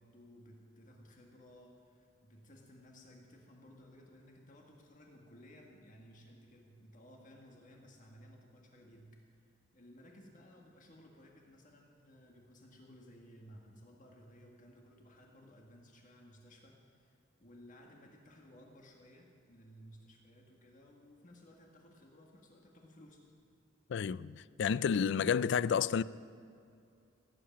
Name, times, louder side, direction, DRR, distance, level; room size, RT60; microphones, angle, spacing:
voice 1, 0.0-23.2, equal, 40° left, 1.8 m, -58 dB
voice 2, 23.9-26.0, left 7 dB, 65° left, 0.3 m, -30 dB
17.5 x 8.6 x 8.7 m
head